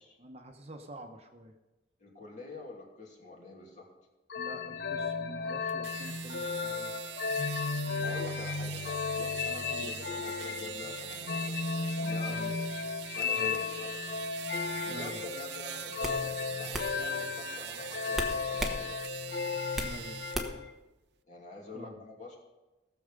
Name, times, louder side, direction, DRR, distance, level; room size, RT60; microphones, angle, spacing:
voice 1, 0.2-1.6 4.4-7.0 9.7-10.0 12.3-12.6 13.3-13.6 14.9-15.2 19.8-20.2 21.7-22.0, right 1 dB, 35° right, 4 dB, 0.9 m, -46 dB
voice 2, 2.0-3.9 8.0-11.6 12.0-12.6 13.2-13.9 14.8-18.9 21.3-22.4, left 3 dB, 40° left, -1 dB, 2.7 m, -46 dB
sound 1, 4.3-20.7, left 5 dB, 60° left, 0.6 m, -35 dB
sound 2, 5.7-20.4, right 11 dB, 75° right, 0.6 m, -43 dB
sound 3, 15.2-15.4 16.0-16.2 16.7-16.9 18.1-18.8 19.2-20.0 20.3-20.7, equal, ahead, 1.1 m, -34 dB
17.0 x 7.0 x 5.2 m, 1.1 s
head